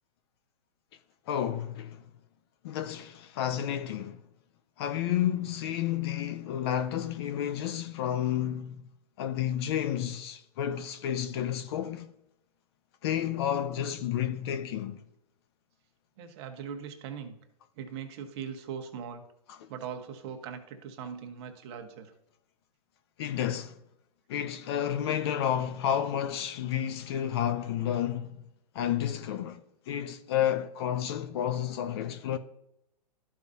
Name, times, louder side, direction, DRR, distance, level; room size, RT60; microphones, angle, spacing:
voice 1, 1.3-2.0 2.6-4.2 4.8-8.8 9.2-12.1 13.0-15.0 19.5-19.7 23.2-23.7 24.3-28.4 28.7-32.4, left 10 dB, 40° left, 0.5 m, -31 dB
voice 2, 16.2-17.4 17.8-19.2 19.7-22.1, right 7 dB, 40° right, 1.1 m, -40 dB
13.0 x 4.8 x 2.7 m
hypercardioid pair, 150°, 21 cm